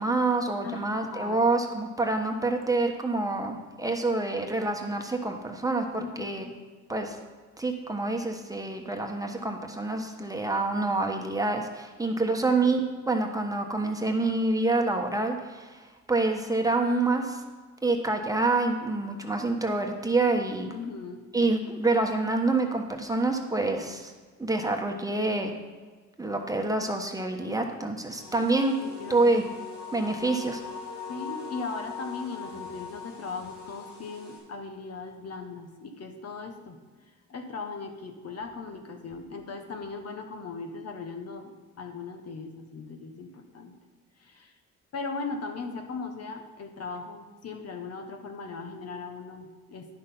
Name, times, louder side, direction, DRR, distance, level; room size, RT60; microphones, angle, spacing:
voice 1, 0.0-6.5 6.9-7.2 7.6-17.4 17.8-20.7 21.3-24.1 24.4-25.5 26.2-28.7 29.1-29.4 29.9-30.6, right 2 dB, 10° right, 3 dB, 1.2 m, -27 dB
voice 2, 0.6-1.4 6.0-6.6 20.7-21.2 28.8-29.4 31.1-36.8 37.3-43.8 44.2-44.5 44.9-49.9, left 4 dB, 55° left, 5 dB, 1.3 m, -38 dB
sound 1, 28.2-34.4, left 5 dB, 90° left, 3.4 m, -41 dB
10.5 x 6.4 x 5.5 m, 1.4 s
cardioid pair, 90°, 30 cm